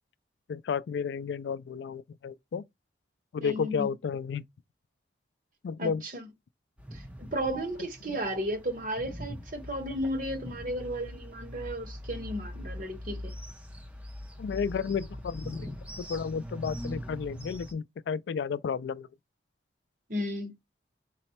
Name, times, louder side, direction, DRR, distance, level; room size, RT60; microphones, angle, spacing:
voice 1, 0.5-2.6 3.3-4.4 5.6-6.0 8.1-8.2 14.4-19.1, left 6 dB, 70° left, 0.3 m, -32 dB
voice 2, 3.4-3.9 5.8-6.3 6.9-7.0 7.3-13.4 20.1-20.5, equal, 45° right, 1.1 m, -34 dB
sound 1, 6.8-17.7, equal, 5° right, 0.6 m, -42 dB
4.1 x 2.1 x 4.2 m
head